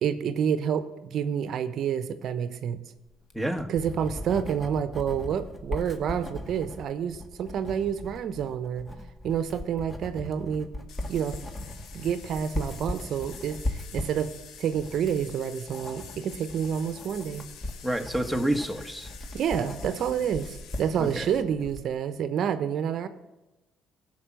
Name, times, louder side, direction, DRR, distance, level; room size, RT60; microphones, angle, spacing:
voice 1, 0.0-2.8 3.7-8.9 9.2-10.7 11.1-11.4 11.9-14.3 14.6-17.4 19.3-23.1, right 8 dB, 60° right, 11 dB, 0.8 m, -29 dB
Writing, 3.1-21.9, left 1 dB, 25° left, 1.9 m, -39 dB
voice 2, 3.3-3.7 17.8-19.1 21.0-21.3, right 1 dB, 5° left, 8 dB, 1.5 m, -28 dB
sound 1, 10.9-21.4, left 8 dB, 70° left, 1.1 m, -48 dB
15.5 x 6.0 x 7.6 m, 1.0 s
hypercardioid pair, 60°, 0 cm